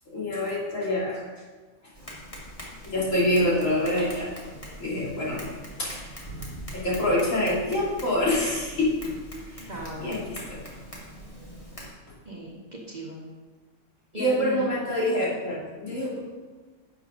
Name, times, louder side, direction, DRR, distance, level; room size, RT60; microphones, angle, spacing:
voice 1, 0.1-1.2 2.8-4.3 4.8-5.5 5.8-6.1 6.7-9.0 9.5-9.7 10.0-10.6 14.1-16.2, left 1 dB, 60° left, -6 dB, 3.4 m, -26 dB
Tap, 1.9-11.9, equal, 25° left, 2.4 m, -42 dB
voice 2, 9.7-10.2 12.2-13.3 14.1-14.7, equal, 30° right, -3 dB, 1.6 m, -37 dB
11.5 x 7.4 x 3.8 m, 1.4 s
omnidirectional pair, 1.5 m